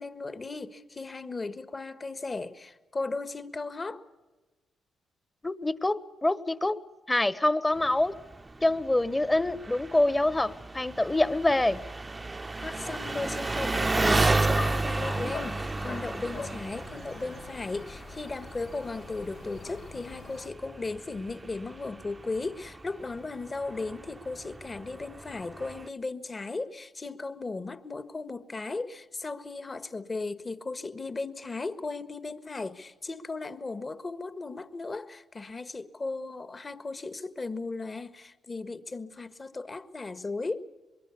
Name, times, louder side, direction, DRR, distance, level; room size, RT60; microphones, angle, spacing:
voice 1, 0.0-4.0 12.6-40.7, left 3 dB, 35° left, 1.5 m, -36 dB
voice 2, 5.4-6.8 7.1-8.2 8.6-11.8, left 2 dB, 20° left, 1.3 m, -25 dB
Engine, 7.8-25.9, right 3 dB, 25° right, 0.8 m, -33 dB
Cañada Real Arevalo Ávila, 14.2-20.5, left 5 dB, 55° left, 0.8 m, -43 dB
24.5 x 22.5 x 7.1 m
hypercardioid pair, 45°, 0 cm